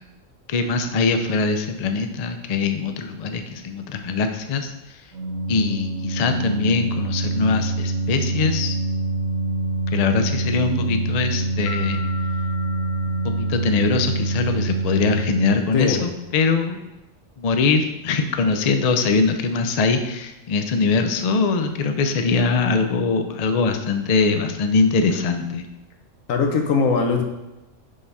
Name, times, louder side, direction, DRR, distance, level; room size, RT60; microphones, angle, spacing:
voice 1, 0.5-4.7 5.5-8.8 9.9-12.0 13.2-16.8 17.4-25.7, left 4 dB, 70° left, 7 dB, 0.3 m, -22 dB
Organ, 5.1-15.9, right 2 dB, 80° right, 1.2 m, -25 dB
sound 1, 11.7-14.3, left 3 dB, 40° left, 0.9 m, -38 dB
voice 2, 26.3-27.2, left 4 dB, 85° left, 4 dB, 1.2 m, -20 dB
5.3 x 3.4 x 5.4 m, 1.0 s
omnidirectional pair, 1.3 m